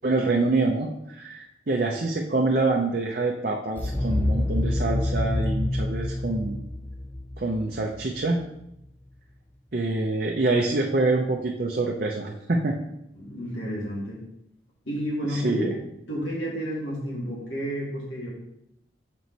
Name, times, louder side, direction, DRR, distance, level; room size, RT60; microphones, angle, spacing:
voice 1, 0.0-6.6 7.4-8.4 9.7-12.8 15.3-15.7, right 2 dB, 50° right, 0 dB, 0.6 m, -26 dB
sound 1, 3.8-8.6, left 1 dB, 10° left, 0.4 m, -27 dB
voice 2, 13.1-14.2 14.9-18.3, equal, 90° left, -5 dB, 2.3 m, -31 dB
6.2 x 5.3 x 4.1 m, 0.81 s
head